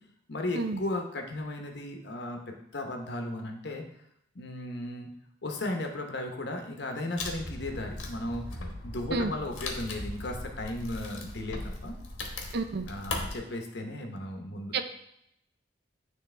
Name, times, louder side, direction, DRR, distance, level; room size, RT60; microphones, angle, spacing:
voice 1, 0.3-3.8 4.3-5.1 5.4-11.9 12.9-14.7, left 1 dB, 60° left, 3 dB, 0.9 m, -35 dB
Wood, 7.2-13.4, left 2 dB, 85° left, 1.1 m, -38 dB
voice 2, 12.5-12.9 14.7-14.8, right 3 dB, 55° right, 8 dB, 0.5 m, -29 dB
9.2 x 3.3 x 3.3 m, 0.77 s
head